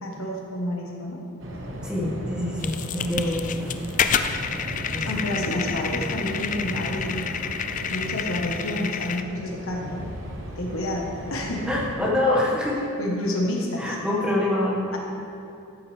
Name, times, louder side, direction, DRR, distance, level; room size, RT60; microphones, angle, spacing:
voice 1, 0.0-1.3 5.0-7.3 7.9-10.1 10.6-11.7 13.0-14.0 14.9-15.0, left 1 dB, 65° left, 0 dB, 1.3 m, -29 dB
sound 1, 1.4-11.9, right 1 dB, 60° right, 1.1 m, -36 dB
voice 2, 1.8-3.5 4.9-5.3 11.7-12.9 13.8-15.0, left 1 dB, 5° right, -6 dB, 1.6 m, -25 dB
sound 2, 2.6-9.2, left 7 dB, 35° left, 0.3 m, -29 dB
13.5 x 7.1 x 3.4 m, 2.5 s
head